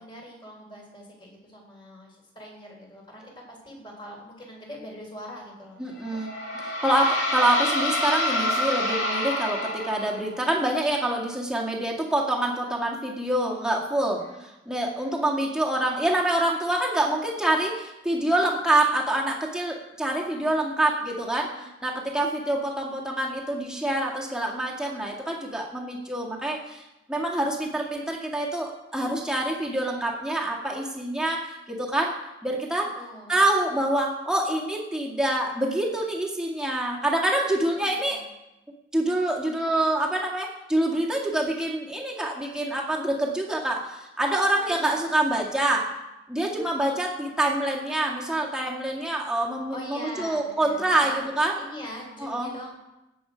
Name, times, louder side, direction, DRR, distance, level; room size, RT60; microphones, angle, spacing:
voice 1, 0.0-3.2 3.5-5.8 6.1-6.2 14.2-14.4 15.0-15.1 21.5-21.7 22.0-22.2 33.0-33.4 37.7-38.2 44.7-45.0 46.5-46.7 49.7-51.2 51.6-52.7, equal, 25° left, -1 dB, 3.7 m, -42 dB
voice 2, 5.8-6.3 6.6-26.8 27.1-32.1 32.4-32.9 33.3-38.2 38.9-45.9 46.3-51.1 51.4-51.5 52.2-52.5, right 1 dB, 5° right, -2 dB, 1.9 m, -26 dB
sound 1, 6.0-10.3, left 1 dB, 80° left, 2.5 m, -27 dB
17.0 x 8.0 x 5.1 m, 0.96 s
head